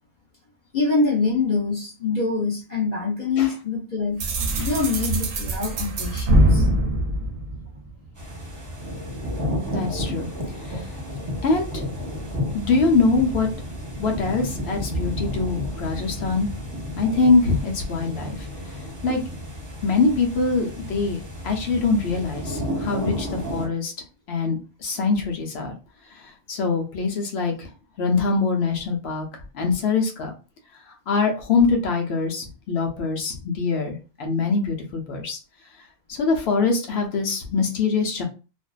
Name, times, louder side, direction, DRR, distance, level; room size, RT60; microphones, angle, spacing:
voice 1, 0.7-4.3 4.6-6.7, left 4 dB, 50° left, -3 dB, 0.6 m, -25 dB
sound 1, 4.2-8.1, right 1 dB, 65° right, 0.7 m, -22 dB
sound 2, 8.2-23.7, equal, 20° right, 0.7 m, -31 dB
voice 2, 9.7-10.3 10.6-10.9 11.4-11.8 12.5-13.5 14.0-16.6 17.0-18.5 19.0-19.2 19.8-21.2 21.4-23.9 24.3-25.7 26.5-27.7 28.0-29.3 29.5-30.3 31.1-35.4 36.1-38.2, left 4 dB, 90° left, 2 dB, 0.9 m, -23 dB
2.5 x 2.2 x 2.3 m, 0.32 s
omnidirectional pair, 1.1 m